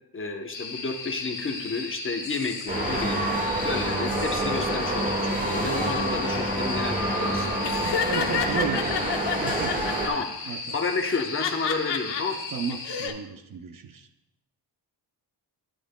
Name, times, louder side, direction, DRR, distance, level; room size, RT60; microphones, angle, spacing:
voice 1, 0.1-3.2 3.6-7.5 10.1-12.4, left 4 dB, 30° left, 3 dB, 0.8 m, -31 dB
sound 1, 0.5-13.1, left 4 dB, 45° left, 1.2 m, -37 dB
sound 2, 2.7-10.1, right 1 dB, 20° right, 1.6 m, -27 dB
Laughter, 7.6-10.2 11.0-12.2 12.7-13.1, left 7 dB, 65° left, 0.8 m, -29 dB
voice 2, 8.1-9.1 9.3-9.8 10.5-10.6 12.5-14.1, right 5 dB, 50° right, 8 dB, 0.6 m, -33 dB
13.0 x 9.7 x 2.2 m, 0.86 s
wide cardioid pair, 175°, 44 cm